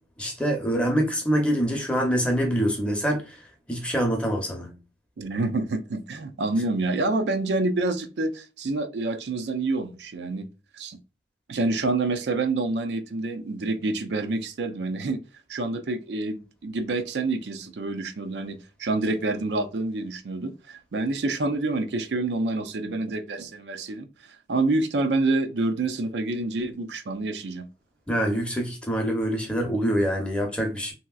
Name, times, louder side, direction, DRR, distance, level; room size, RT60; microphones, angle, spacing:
voice 1, 0.2-3.4 3.7-4.7 28.1-30.9, equal, 5° left, 0.7 m, -25 dB
voice 2, 5.2-10.5 10.7-11.0 11.5-15.2 15.5-27.7, right 2 dB, 80° right, 0.5 m, -27 dB
3.0 x 2.8 x 2.3 m
head